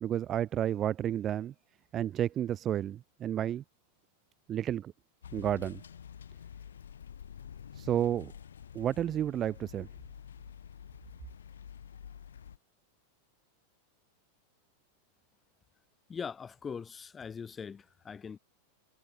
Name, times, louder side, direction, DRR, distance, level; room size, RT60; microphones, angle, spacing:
voice 1, 0.0-1.5 1.9-3.6 4.5-4.9 5.3-5.8 7.8-8.3 8.7-9.9, right 11 dB, 30° right, 0.4 m, -31 dB
sound 1, 5.2-12.6, left 8 dB, 65° left, 0.5 m, -48 dB
voice 2, 16.1-18.4, left 6 dB, 20° left, 1.2 m, -41 dB
figure-of-eight pair, 90°, 0 cm